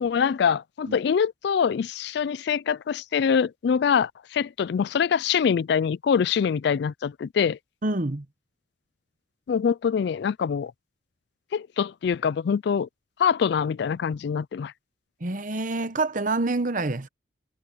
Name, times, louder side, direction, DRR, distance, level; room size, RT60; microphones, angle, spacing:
voice 1, 0.0-7.6 9.5-10.7 11.5-12.9 13.2-14.7, left 7 dB, 60° left, 0.3 m, -24 dB
voice 2, 7.8-8.2 15.2-17.1, right 2 dB, 45° right, 1.0 m, -27 dB
head